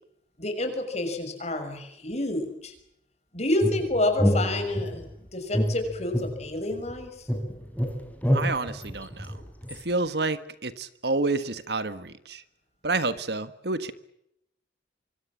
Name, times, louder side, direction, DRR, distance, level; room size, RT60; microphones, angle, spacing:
voice 1, 0.4-2.7 3.3-7.3, left 2 dB, 35° left, 7 dB, 6.0 m, -29 dB
sound 1, 3.6-5.1 5.5-7.0 7.3-9.8, equal, 10° left, 3.9 m, -27 dB
voice 2, 8.3-9.4 9.7-12.4 12.8-13.9, right 3 dB, 60° right, 13 dB, 1.5 m, -29 dB
25.5 x 25.0 x 7.5 m, 0.79 s
head